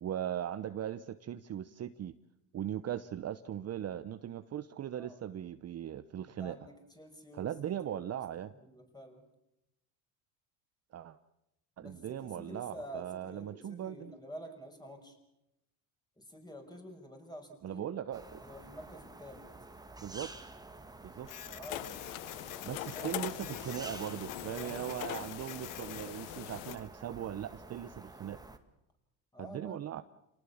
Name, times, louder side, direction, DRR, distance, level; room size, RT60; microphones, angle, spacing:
voice 1, 0.0-2.1 2.5-6.6 7.3-8.5 10.9-11.2 11.8-14.1 17.6-18.4 20.0-20.3 21.0-21.3 22.6-28.4 29.4-30.0, right 10 dB, 35° right, 12 dB, 0.9 m, -39 dB
voice 2, 6.2-9.2 11.8-12.0 12.4-15.2 16.2-17.9 18.4-19.4 21.5-21.9 22.9-23.3 24.6-24.9 29.3-30.0, equal, 10° left, 4 dB, 6.3 m, -49 dB
sound 1, 18.1-28.6, right 2 dB, 10° right, 2.1 m, -50 dB
Printer, 21.2-26.9, left 11 dB, 50° left, 1.4 m, -49 dB
sound 2, 21.7-26.8, left 17 dB, 85° left, 1.0 m, -42 dB
28.5 x 19.0 x 7.3 m, 0.89 s
supercardioid pair, 105°, 42 cm